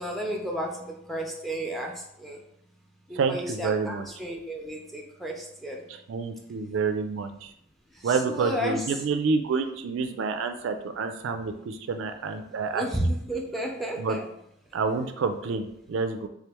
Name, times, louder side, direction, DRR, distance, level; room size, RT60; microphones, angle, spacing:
voice 1, 0.0-2.4 3.1-5.9 7.9-9.0 12.7-14.2, equal, ahead, 0 dB, 0.4 m, -32 dB
voice 2, 3.1-4.1 6.1-7.5 8.0-12.8 14.0-14.2 14.7-16.3, right 4 dB, 60° right, 7 dB, 0.3 m, -28 dB
3.5 x 2.9 x 3.4 m, 0.75 s
head